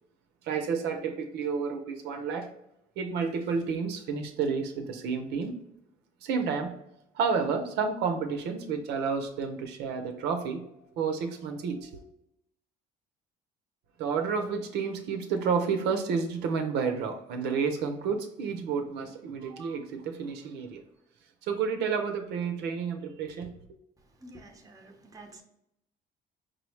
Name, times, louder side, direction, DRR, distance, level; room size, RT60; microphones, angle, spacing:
voice 1, 0.4-2.5 3.0-5.5 6.2-6.7 7.1-10.7 10.9-12.0 14.0-20.8 21.5-23.5, right 5 dB, 80° right, 5 dB, 0.6 m, -30 dB
voice 2, 24.2-25.4, right 2 dB, 20° right, 3 dB, 0.7 m, -49 dB
5.2 x 2.0 x 3.1 m, 0.79 s
cardioid pair, 110°, 17 cm